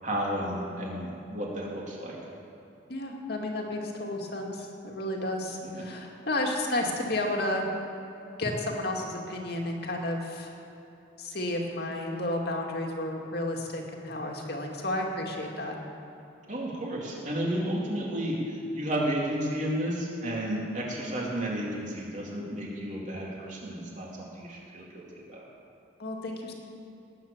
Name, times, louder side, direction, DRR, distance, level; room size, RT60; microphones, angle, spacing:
voice 1, 0.0-2.1 5.6-5.9 16.5-24.1 24.3-25.4, right 1 dB, 45° right, -4 dB, 3.5 m, -32 dB
voice 2, 2.9-7.7 8.4-10.5 11.2-15.7 26.0-26.5, left 1 dB, 60° left, 0 dB, 2.2 m, -32 dB
18.5 x 9.8 x 7.3 m, 2.9 s
head